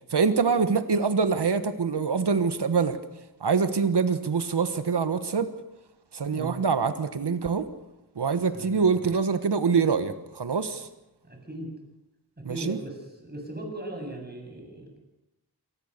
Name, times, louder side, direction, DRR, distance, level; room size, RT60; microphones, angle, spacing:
voice 1, 0.1-3.0 3.4-5.5 6.1-7.7 8.2-10.9 12.4-12.8, right 5 dB, 90° right, 11 dB, 1.4 m, -25 dB
voice 2, 8.5-8.9 11.2-11.7 12.4-14.9, right 1 dB, 25° right, 2 dB, 7.7 m, -38 dB
27.5 x 19.5 x 6.7 m, 0.91 s
wide cardioid pair, 85°, 39 cm